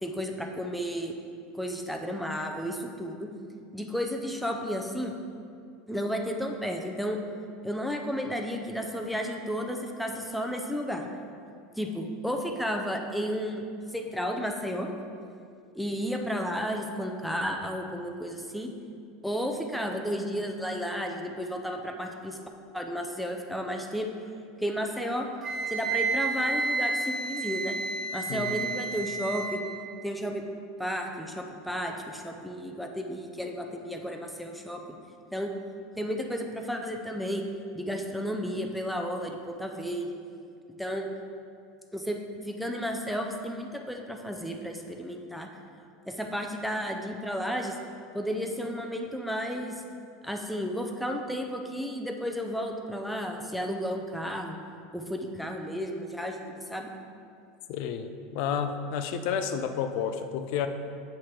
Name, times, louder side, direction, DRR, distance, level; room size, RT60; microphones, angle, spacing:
voice 1, 0.0-1.1 1.5-3.3 3.7-5.1 5.9-7.2 7.6-11.0 11.8-13.6 13.9-14.9 15.7-18.7 19.2-22.4 22.7-24.1 24.6-25.3 25.7-27.8 28.1-29.6 30.0-30.4 30.8-34.9 35.3-35.5 36.0-37.4 37.7-40.1 40.8-41.1 41.9-42.2 42.4-45.5 46.1-47.7 48.1-49.8 50.2-54.6 54.9-56.9, equal, ahead, 2 dB, 0.4 m, -32 dB
Wind instrument woodwind instrument, 25.4-29.6, right 3 dB, 20° right, 1.1 m, -30 dB
voice 2, 28.3-28.7 57.7-60.7, left 7 dB, 60° left, 8 dB, 0.4 m, -31 dB
7.7 x 2.9 x 4.9 m, 2.4 s
supercardioid pair, 150°, 0 cm